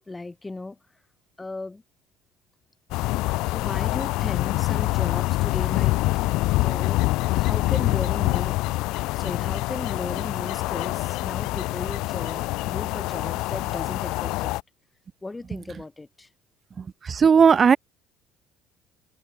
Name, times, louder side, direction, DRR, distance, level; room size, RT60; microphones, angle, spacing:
voice 1, 0.1-0.8 1.4-1.8 3.5-6.0 6.6-7.0 7.3-8.6 9.2-14.6 15.2-16.3, left 2 dB, 15° left, 4.4 m, -36 dB
sound 1, 2.9-14.6, left 20 dB, 75° left, 1.2 m, -25 dB
voice 2, 17.1-17.8, right 6 dB, 30° right, 1.2 m, -15 dB
cardioid pair, 115°, 0 cm